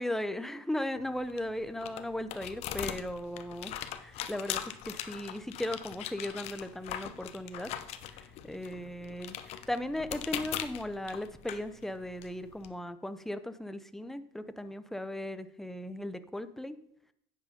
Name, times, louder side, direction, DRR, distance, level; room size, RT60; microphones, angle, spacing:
voice 1, 0.0-3.7 4.0-7.7 8.1-16.8, left 1 dB, 5° left, 11 dB, 0.7 m, -37 dB
sound 1, 1.0-12.7, left 11 dB, 55° left, 0.9 m, -41 dB
10.5 x 7.7 x 5.0 m, 0.73 s
supercardioid pair, 120°, 13 cm